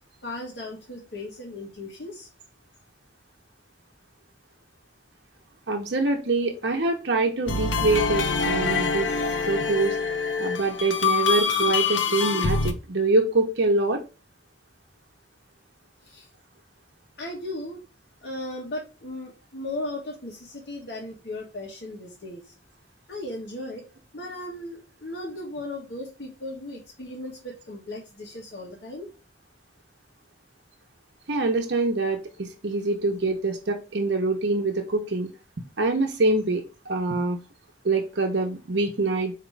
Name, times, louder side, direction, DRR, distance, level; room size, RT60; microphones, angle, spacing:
voice 1, 0.2-2.3 9.4-9.8 16.0-16.3 17.2-17.8 18.2-22.4 23.1-23.8 24.1-29.1, left 1 dB, 60° left, -3 dB, 1.3 m, -36 dB
voice 2, 5.7-9.1 9.5-10.0 10.4-14.0 31.3-35.3 35.8-37.4 37.8-39.3, right 2 dB, 70° right, 3 dB, 0.8 m, -25 dB
sound 1, 7.5-12.7, left 5 dB, 80° left, 0.7 m, -25 dB
5.0 x 2.9 x 3.3 m, 0.32 s
head